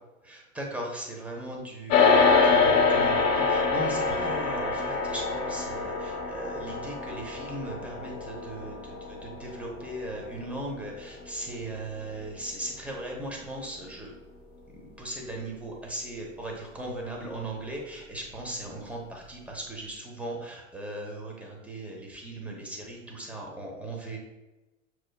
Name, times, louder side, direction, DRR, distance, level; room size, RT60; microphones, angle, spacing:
voice 1, 0.2-14.1 14.7-24.2, right 1 dB, 5° right, -1 dB, 0.9 m, -38 dB
sound 1, 1.9-11.4, left 4 dB, 45° left, 1.2 m, -25 dB
6.3 x 3.1 x 2.3 m, 1.1 s
hypercardioid pair, 115°, 39 cm